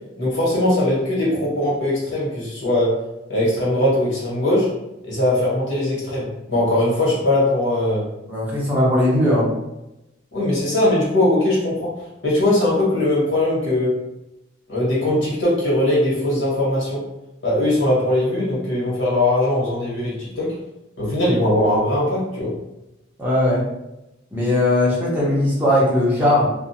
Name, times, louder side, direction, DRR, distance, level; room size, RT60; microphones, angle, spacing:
voice 1, 0.2-3.0 3.3-4.7 5.0-8.0 10.3-11.9 12.2-14.0 14.7-17.0 17.4-20.6 21.0-22.5, left 1 dB, 60° left, -7 dB, 1.4 m, -20 dB
voice 2, 8.3-9.5 23.2-23.6 24.3-26.4, left 1 dB, 10° right, -7 dB, 0.7 m, -18 dB
2.4 x 2.1 x 2.8 m, 0.93 s
head